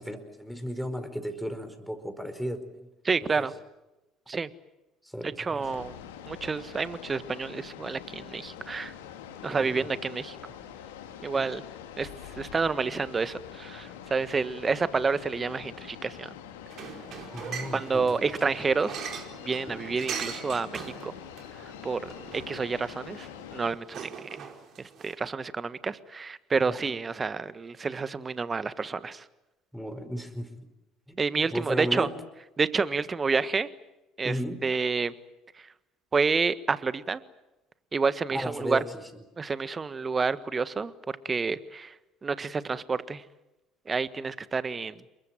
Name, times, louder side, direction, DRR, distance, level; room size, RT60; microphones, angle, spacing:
voice 1, 0.0-2.9 3.2-3.5 5.0-5.8 9.6-9.9 11.3-11.4 17.3-18.3 19.7-19.8 26.7-26.8 29.7-30.7 31.1-31.2 31.5-32.2 34.2-34.6 38.3-39.0, equal, ahead, 9 dB, 4.8 m, -35 dB
voice 2, 3.0-3.5 4.3-4.5 5.4-5.9 6.3-8.9 9.4-10.4 11.2-11.6 12.0-12.1 12.4-16.3 17.7-18.9 19.4-21.1 21.8-24.1 24.4-24.5 25.0-29.2 31.2-32.1 32.6-33.7 34.2-34.4 34.6-35.1 36.1-37.2 37.9-38.8 39.4-40.9 41.2-41.9 42.2-43.2 43.9-44.9, right 4 dB, 25° right, 14 dB, 1.5 m, -29 dB
sound 1, 5.6-23.7, left 9 dB, 75° left, 2.7 m, -45 dB
sound 2, 16.7-25.1, right 7 dB, 50° right, 4.6 m, -41 dB
28.5 x 23.0 x 7.6 m, 0.99 s
figure-of-eight pair, 60°, 0 cm